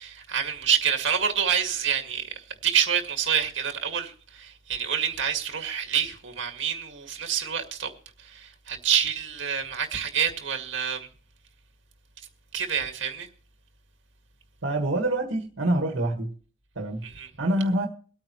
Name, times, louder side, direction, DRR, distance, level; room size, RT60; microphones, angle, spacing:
voice 1, 0.0-7.9 8.2-11.1 12.5-13.3 17.0-17.3, right 8 dB, 70° right, 2.0 m, -27 dB
voice 2, 14.6-16.3 16.7-17.0 17.4-17.9, right 1 dB, 85° right, 1.7 m, -26 dB
23.5 x 9.0 x 3.1 m
head